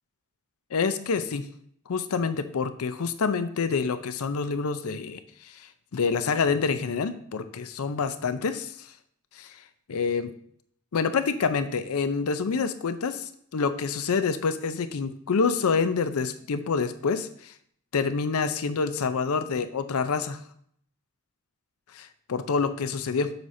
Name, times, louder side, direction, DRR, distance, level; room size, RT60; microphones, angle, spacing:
voice 1, 0.7-1.4 1.9-8.9 9.3-9.6 9.9-10.3 10.9-17.5 17.9-20.4 21.9-23.3, left 5 dB, 75° left, 11 dB, 0.5 m, -27 dB
7.8 x 5.7 x 2.7 m, 0.65 s
head